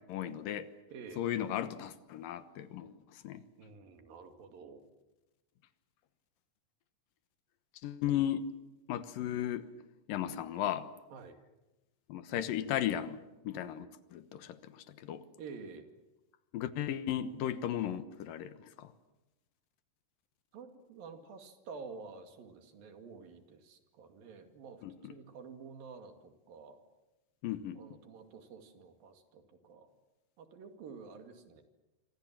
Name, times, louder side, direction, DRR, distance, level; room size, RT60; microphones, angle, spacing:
voice 1, 0.1-0.7 1.2-3.0 3.2-3.4 7.8-8.5 8.9-9.7 10.1-10.9 12.1-15.2 16.5-18.9 24.8-25.1 27.4-27.8, left 11 dB, 80° left, 12 dB, 2.8 m, -35 dB
voice 2, 0.9-1.3 3.6-4.8 11.1-11.4 15.4-15.9 20.5-26.8 27.7-29.9 30.4-31.6, right 5 dB, 85° right, 6 dB, 4.1 m, -50 dB
27.0 x 25.0 x 7.5 m, 1.0 s
omnidirectional pair, 4.0 m